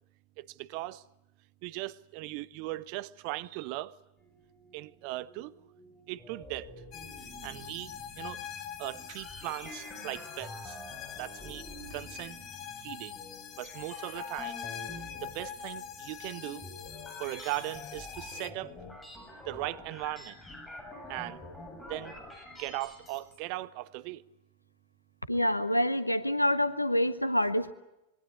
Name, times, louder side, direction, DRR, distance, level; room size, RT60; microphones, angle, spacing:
voice 1, 0.4-1.0 1.6-3.9 4.7-5.5 6.1-6.7 7.4-8.4 8.8-10.8 11.2-12.4 12.8-13.2 13.6-14.6 15.2-16.7 17.2-18.7 19.5-20.4 21.1-21.4 21.9-22.2 22.6-24.2, right 18 dB, 45° right, 0.9 m, -38 dB
sound 1, 4.2-23.4, left 1 dB, 10° left, 7.8 m, -48 dB
sound 2, 6.9-18.5, left 9 dB, 35° left, 2.0 m, -44 dB
voice 2, 25.3-27.7, left 1 dB, 85° left, 1.4 m, -27 dB
26.0 x 22.5 x 8.3 m
figure-of-eight pair, 90°, 0 cm